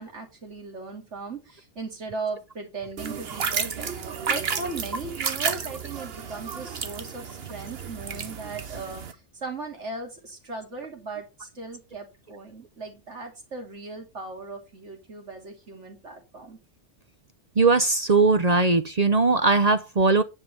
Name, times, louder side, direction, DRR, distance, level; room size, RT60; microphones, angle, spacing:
voice 1, 0.0-3.9 4.3-16.6, right 3 dB, 75° right, 3.3 m, -38 dB
sound 1, 3.0-9.1, right 6 dB, 60° right, 1.2 m, -32 dB
voice 2, 17.6-20.2, right 3 dB, 40° right, 0.7 m, -20 dB
10.0 x 5.7 x 5.3 m
omnidirectional pair, 1.2 m